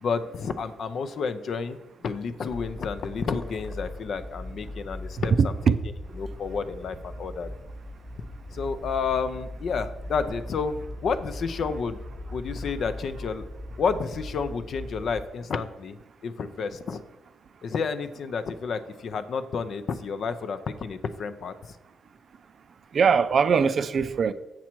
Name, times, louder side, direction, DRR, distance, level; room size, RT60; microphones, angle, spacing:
voice 1, 0.0-5.5 6.2-7.5 8.5-12.0 12.3-13.4 13.8-16.0 16.2-17.0 17.6-21.8, left 5 dB, 50° left, 0.5 m, -30 dB
sound 1, 2.5-15.3, left 1 dB, 25° left, 1.2 m, -39 dB
voice 2, 5.2-5.8 22.9-24.3, right 6 dB, 40° right, 0.4 m, -21 dB
7.4 x 7.0 x 4.5 m
cardioid pair, 155°, 0 cm